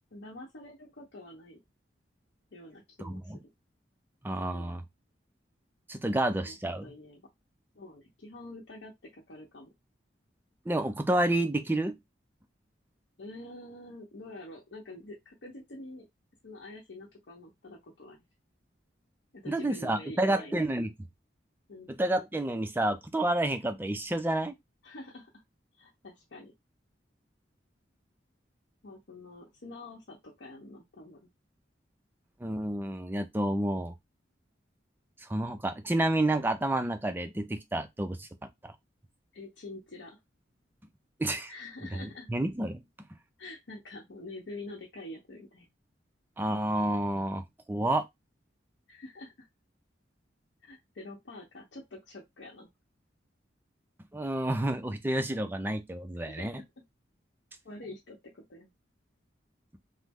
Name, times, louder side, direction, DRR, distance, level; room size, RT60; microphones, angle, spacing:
voice 1, 0.1-1.6 2.5-3.3 4.3-4.8 6.4-7.2 7.7-9.7 13.2-16.1 16.4-18.2 19.3-20.7 21.7-21.9 24.8-25.3 25.8-26.5 28.8-31.2 39.3-40.2 41.5-42.3 43.4-45.7 48.9-49.5 50.6-52.7 56.2-56.5 57.6-58.7, left 2 dB, 70° left, 0.8 m, -46 dB
voice 2, 3.0-3.4 4.2-4.8 5.9-6.9 10.7-12.0 19.5-21.1 21.9-24.6 32.4-33.9 35.2-38.3 38.6-38.7 41.2-41.5 41.9-42.8 46.4-48.1 54.1-56.6, right 1 dB, 10° right, 0.3 m, -30 dB
3.0 x 2.0 x 3.5 m
head